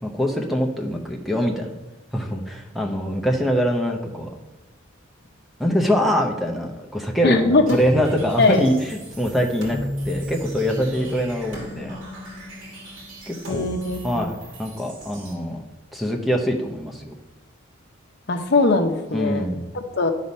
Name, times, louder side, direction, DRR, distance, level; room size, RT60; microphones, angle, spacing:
voice 1, 0.0-1.7 2.1-4.3 5.6-9.8 10.0-12.0 13.3-13.7 14.0-15.6 15.9-17.1 19.1-19.6, equal, ahead, 2 dB, 0.7 m, -24 dB
voice 2, 7.2-7.8 8.4-8.6 13.5-14.3 18.3-19.5 19.7-20.1, left 3 dB, 55° left, 6 dB, 0.7 m, -20 dB
sound 1, 7.7-15.3, equal, 65° right, 2.6 m, -35 dB
11.5 x 4.1 x 5.4 m, 1.1 s
head